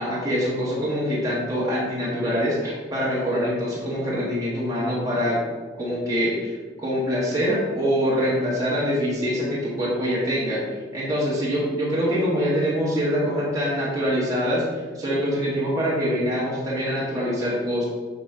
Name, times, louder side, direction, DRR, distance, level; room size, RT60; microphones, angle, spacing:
voice 1, 0.0-5.4 5.8-10.6 10.9-14.7 15.0-17.8, equal, 20° right, -7 dB, 1.8 m, -24 dB
8.2 x 3.4 x 5.6 m, 1.4 s
head